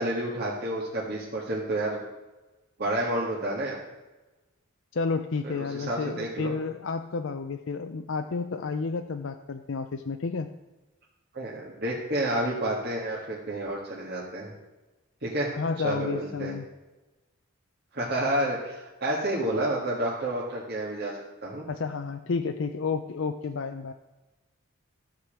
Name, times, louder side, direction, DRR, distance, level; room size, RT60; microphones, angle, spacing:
voice 1, 0.0-2.0 2.8-3.8 5.4-6.5 11.3-14.5 15.2-15.5 15.8-16.5 17.9-21.1 21.4-21.6, right 1 dB, 50° right, -4 dB, 1.8 m, -30 dB
voice 2, 4.9-10.5 15.5-16.7 21.7-23.9, left 4 dB, 60° left, 7 dB, 0.5 m, -31 dB
14.0 x 5.1 x 7.4 m, 1.1 s
head